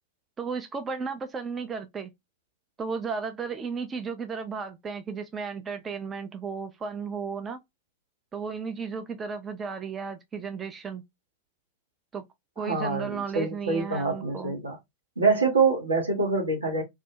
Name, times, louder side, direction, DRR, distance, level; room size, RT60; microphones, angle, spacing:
voice 1, 0.4-2.1 2.8-7.6 8.3-11.0 12.1-12.3 12.6-14.5, right 5 dB, 20° right, 0.3 m, -34 dB
voice 2, 12.6-14.8 15.2-16.8, right 4 dB, 75° right, 1.0 m, -25 dB
2.4 x 2.1 x 2.7 m
figure-of-eight pair, 90°, 0 cm